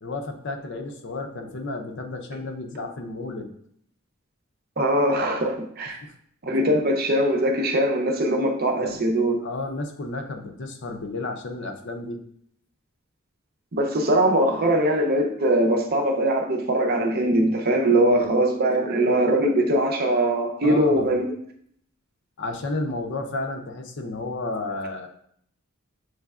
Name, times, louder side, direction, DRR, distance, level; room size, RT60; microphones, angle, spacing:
voice 1, 0.0-3.5 6.0-6.1 8.8-9.0 9.4-12.2 17.9-18.3 20.6-21.2 22.4-25.1, left 2 dB, 55° left, 5 dB, 0.6 m, -32 dB
voice 2, 4.8-6.0 6.5-9.4 13.7-21.2, right 1 dB, 45° right, 2 dB, 0.6 m, -21 dB
6.7 x 3.2 x 2.4 m, 0.67 s
head